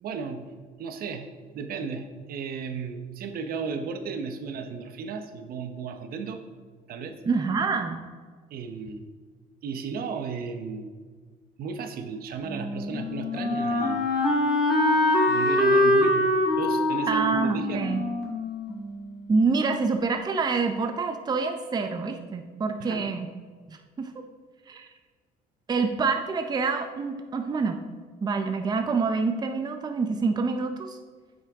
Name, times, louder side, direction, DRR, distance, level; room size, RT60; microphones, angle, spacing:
voice 1, 0.0-0.5 0.8-1.3 1.5-6.4 6.9-7.2 8.5-9.0 9.6-10.9 11.6-14.1 15.3-16.3 16.6-17.8 22.8-23.0, right 5 dB, 60° right, 7 dB, 0.8 m, -34 dB
voice 2, 7.2-8.0 17.1-18.0 19.3-23.3 23.7-24.1 24.7-24.9 25.7-27.8 28.2-31.0, right 4 dB, 25° right, 6 dB, 0.6 m, -26 dB
Wind instrument woodwind instrument, 12.4-19.3, left 1 dB, ahead, 2.2 m, -24 dB
8.4 x 6.4 x 3.6 m, 1.5 s
cardioid pair, 110°, 17 cm